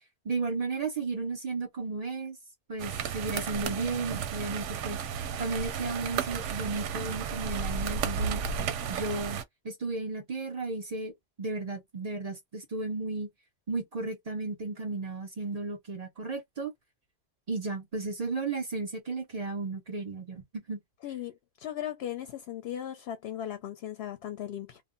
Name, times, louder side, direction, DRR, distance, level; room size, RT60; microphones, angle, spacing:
voice 1, 0.2-2.4 2.7-5.0 5.4-8.4 8.9-13.3 13.7-16.7 17.5-20.8, right 3 dB, 45° right, 0.5 m, -34 dB
sound 1, 2.8-9.4, right 6 dB, 85° right, 0.9 m, -33 dB
voice 2, 21.0-24.8, left 11 dB, 65° left, 0.7 m, -37 dB
2.1 x 2.0 x 3.6 m
omnidirectional pair, 1.2 m